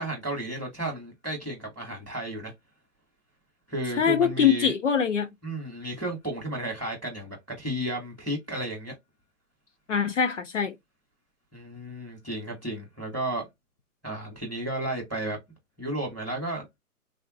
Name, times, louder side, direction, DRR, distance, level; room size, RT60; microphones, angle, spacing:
voice 1, 0.0-2.5 3.7-4.7 5.4-8.9 11.5-13.5 14.0-15.4 15.8-16.6, right 1 dB, ahead, 0.6 m, -33 dB
voice 2, 4.0-5.3 9.9-10.7, left 7 dB, 55° left, 0.5 m, -23 dB
3.6 x 2.1 x 2.5 m
hypercardioid pair, 165°, 45 cm